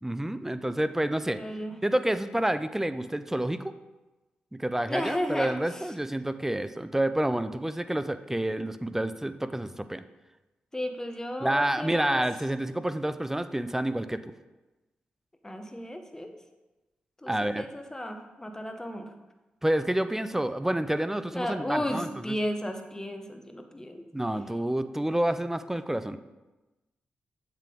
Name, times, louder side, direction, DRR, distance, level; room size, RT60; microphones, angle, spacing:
voice 1, 0.0-1.4 1.8-3.7 4.5-10.0 11.4-14.3 17.3-17.7 19.6-22.1 24.1-26.2, right 1 dB, 10° right, 12 dB, 0.4 m, -28 dB
voice 2, 1.3-1.8 4.9-5.9 10.7-12.2 15.4-16.3 17.2-19.1 21.3-24.0, left 1 dB, 15° left, 6 dB, 0.8 m, -34 dB
7.3 x 3.5 x 3.8 m, 1.1 s
supercardioid pair, 40°, 4 cm